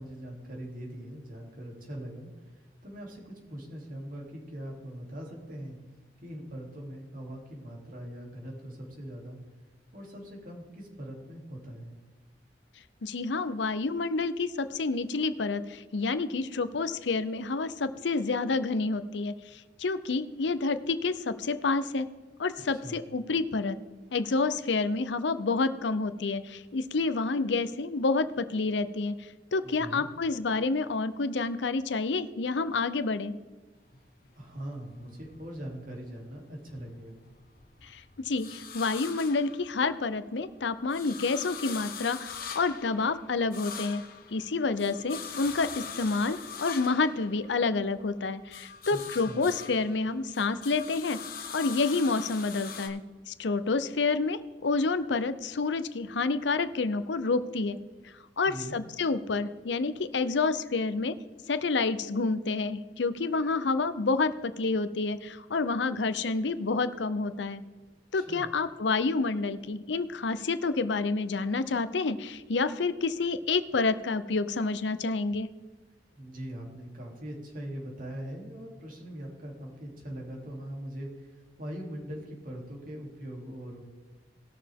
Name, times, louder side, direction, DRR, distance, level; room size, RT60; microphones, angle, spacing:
voice 1, 0.0-5.8 6.2-9.4 9.9-12.0 22.7-23.0 29.6-30.1 34.4-37.2 48.9-49.0 49.2-49.5 58.4-58.8 68.1-68.5 76.1-83.8, right 1 dB, 50° right, -1 dB, 3.0 m, -41 dB
voice 2, 13.0-22.1 22.4-23.8 24.1-29.1 29.5-33.3 37.8-44.0 44.3-51.2 51.5-53.0 53.3-57.8 58.4-61.1 61.5-67.6 68.1-75.5, left 3 dB, 80° left, 13 dB, 0.6 m, -29 dB
sound 1, 33.8-36.2 36.5-40.2 40.6-48.0 48.3-52.9, left 7 dB, 55° left, 1.2 m, -43 dB
19.0 x 6.7 x 3.6 m, 1.3 s
head